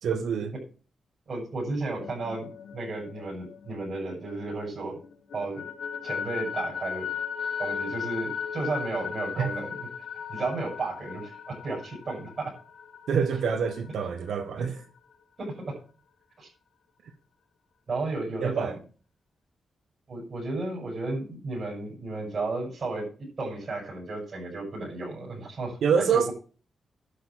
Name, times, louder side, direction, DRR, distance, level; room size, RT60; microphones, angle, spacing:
voice 1, 0.0-0.5 9.4-9.5 13.1-14.8 18.4-18.7 25.8-26.3, right 6 dB, 85° right, 1.2 m, -26 dB
voice 2, 1.3-5.0 5.3-5.6 6.0-7.1 7.6-9.9 10.3-12.5 14.6-14.7 15.4-15.8 16.4-16.5 17.9-18.8 20.1-25.8 26.1-26.3, right 3 dB, 40° right, 7.4 m, -33 dB
sound 1, 1.8-4.7 5.0-14.5, left 7 dB, 70° left, 1.5 m, -37 dB
11.5 x 6.5 x 7.5 m
wide cardioid pair, 135°, 0 cm